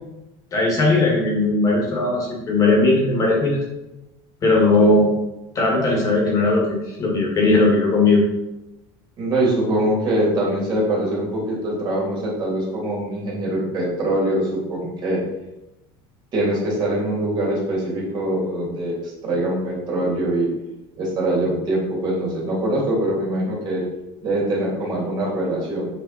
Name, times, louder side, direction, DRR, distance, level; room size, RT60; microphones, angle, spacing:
voice 1, 0.5-3.6 4.4-5.1 5.5-8.2, left 2 dB, 25° left, -2 dB, 1.7 m, -18 dB
voice 2, 9.2-15.2 16.3-20.5 21.0-23.8 24.2-25.9, right 1 dB, 35° right, -4 dB, 2.6 m, -23 dB
7.5 x 4.8 x 4.1 m, 0.97 s
cardioid pair, 165°, 12 cm